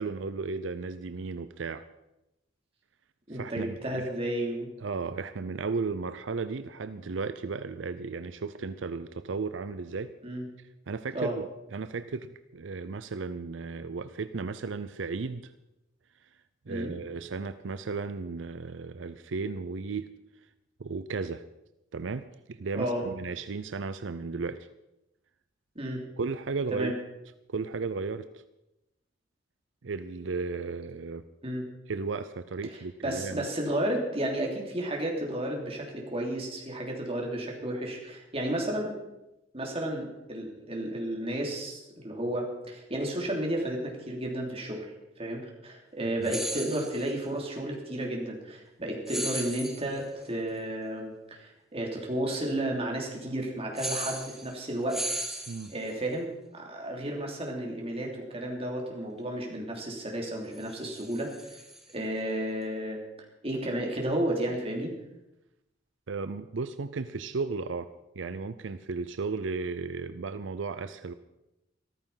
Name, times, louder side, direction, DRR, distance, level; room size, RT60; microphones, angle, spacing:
voice 1, 0.0-1.8 3.3-4.1 4.8-10.1 10.6-15.5 16.7-20.1 20.8-21.4 21.9-24.7 26.2-26.9 27.5-28.4 29.8-31.2 31.9-33.5 46.0-46.3 55.5-55.7 66.1-67.9 68.2-71.1, right 4 dB, 85° right, 12 dB, 0.6 m, -35 dB
voice 2, 3.3-4.7 10.2-10.4 11.1-11.3 16.7-17.0 22.7-23.0 25.7-26.0 26.7-26.9 31.4-31.7 33.0-38.9 39.5-44.8 45.2-55.0 55.7-61.6 61.9-63.0 63.4-64.9, right 1 dB, 30° right, 0 dB, 3.2 m, -32 dB
sound 1, 46.2-47.1 49.1-50.0 53.7-54.6 54.9-55.9 60.5-61.9, right 1 dB, ahead, 1.7 m, -36 dB
14.0 x 14.0 x 5.7 m, 0.93 s
head